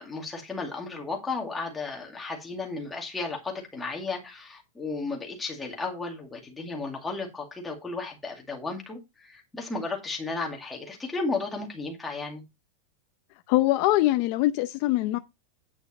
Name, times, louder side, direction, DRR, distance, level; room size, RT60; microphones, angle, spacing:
voice 1, 0.0-12.4, left 3 dB, 5° left, 2.2 m, -34 dB
voice 2, 13.5-15.2, left 16 dB, 35° left, 0.6 m, -23 dB
9.3 x 6.0 x 4.2 m
supercardioid pair, 180°, 0 cm